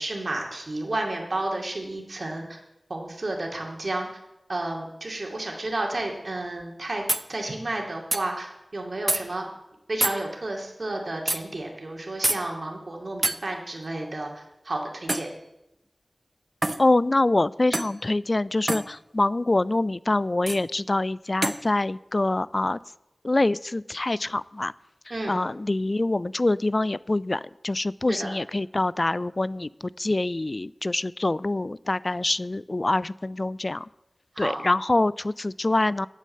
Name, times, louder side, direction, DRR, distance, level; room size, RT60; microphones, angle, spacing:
voice 1, 0.0-2.6 2.9-4.1 4.5-7.0 7.3-9.5 9.9-15.3 25.1-25.3 28.1-28.3 34.3-34.6, right 2 dB, 60° right, 1 dB, 2.4 m, -31 dB
sound 1, 6.6-6.7 7.1-7.3 8.1-8.2 9.1-9.2 10.0-10.2 11.3-11.4 12.2-12.4 13.2-13.4 15.1-15.3 16.6-16.8 17.7-18.0 18.7-18.9 20.5-20.6 21.4-21.6, right 1 dB, 35° right, 0.6 m, -25 dB
voice 2, 16.8-22.8 23.2-24.7 25.3-33.9 34.4-36.1, left 2 dB, 45° left, 20 dB, 0.3 m, -25 dB
8.6 x 8.5 x 7.7 m, 0.90 s
wide cardioid pair, 60°, 0 cm